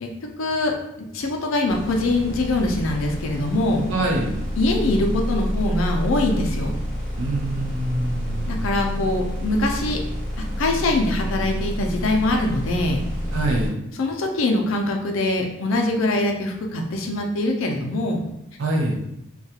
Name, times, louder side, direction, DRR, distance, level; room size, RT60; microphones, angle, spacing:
voice 1, 0.4-0.7 1.1-3.9 4.6-6.7 8.5-10.0 10.4-13.0 14.0-18.2, left 2 dB, 65° left, 2 dB, 0.4 m, -23 dB
sound 1, 1.7-13.7, equal, 40° right, 1.0 m, -28 dB
voice 2, 3.9-4.4 7.2-8.7 13.3-13.8 18.6-19.0, right 1 dB, 65° right, 0 dB, 0.5 m, -25 dB
2.3 x 2.2 x 2.7 m, 0.82 s
head